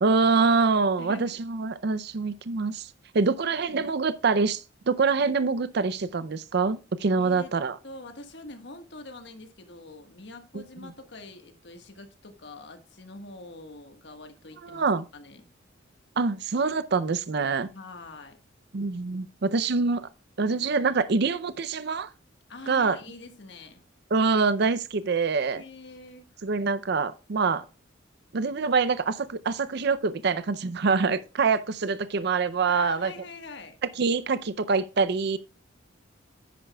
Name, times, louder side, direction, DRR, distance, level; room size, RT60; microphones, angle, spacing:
voice 1, 0.0-2.9 3.1-7.8 14.6-15.0 16.2-17.7 18.7-20.1 20.4-22.1 22.7-23.0 24.1-25.6 26.4-27.6 28.3-33.1 34.0-35.4, right 4 dB, 55° right, 0.5 m, -25 dB
voice 2, 1.0-1.4 3.7-4.1 7.2-7.5 7.8-15.4 17.7-18.4 22.5-23.8 25.5-26.2 32.7-33.8, left 3 dB, 65° left, 1.5 m, -44 dB
10.0 x 8.8 x 2.3 m
head